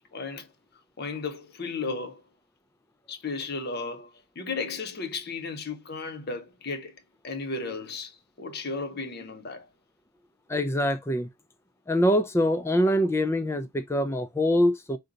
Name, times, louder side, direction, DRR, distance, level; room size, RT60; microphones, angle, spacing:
voice 1, 0.1-0.5 1.0-2.2 3.1-6.9 7.2-9.7, left 4 dB, 45° left, 0.7 m, -34 dB
voice 2, 10.5-11.3 11.9-15.0, equal, 10° left, 0.3 m, -24 dB
3.8 x 2.2 x 3.9 m
head